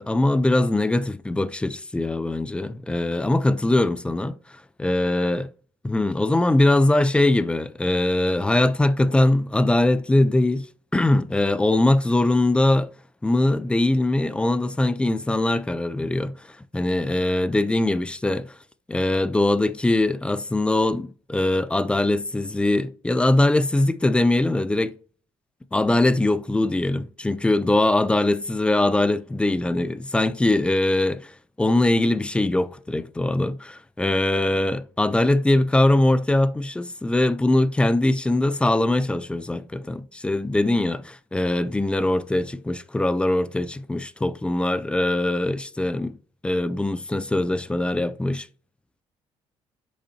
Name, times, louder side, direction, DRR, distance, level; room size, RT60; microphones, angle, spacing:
voice 1, 0.0-4.4 4.8-5.5 5.8-10.7 10.9-12.9 13.2-18.5 18.9-25.0 25.7-31.3 31.6-46.2 46.4-48.5, left 2 dB, 10° left, 0.4 m, -22 dB
7.0 x 5.2 x 2.8 m
cardioid pair, 125°, 11 cm